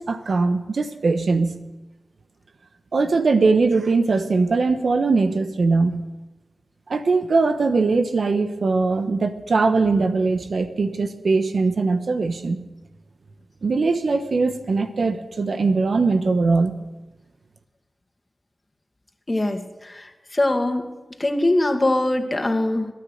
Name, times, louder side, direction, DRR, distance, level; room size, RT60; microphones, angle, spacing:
voice 1, 0.0-1.6 2.9-6.0 6.9-12.6 13.6-16.7, right 3 dB, 75° right, 9 dB, 1.1 m, -21 dB
voice 2, 19.3-20.9 21.2-22.9, left 1 dB, 35° left, 5 dB, 2.2 m, -22 dB
21.5 x 9.5 x 6.6 m, 1.1 s
cardioid pair, 45°, 0 cm